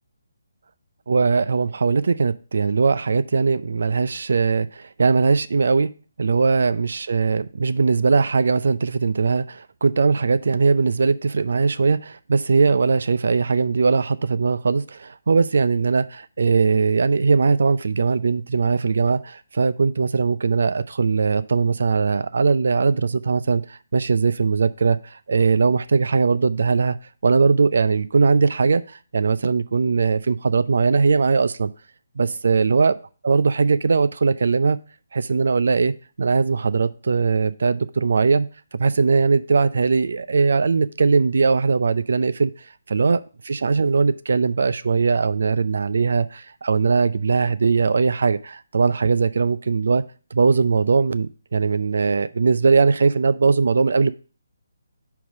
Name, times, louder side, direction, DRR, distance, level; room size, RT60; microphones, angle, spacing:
voice 1, 1.1-5.9 6.2-27.0 27.2-31.7 32.2-32.9 33.2-34.8 35.1-42.5 42.9-50.0 50.3-54.1, right 4 dB, 65° right, 0.4 m, -20 dB
5.5 x 4.7 x 5.1 m
figure-of-eight pair, 145°, 0 cm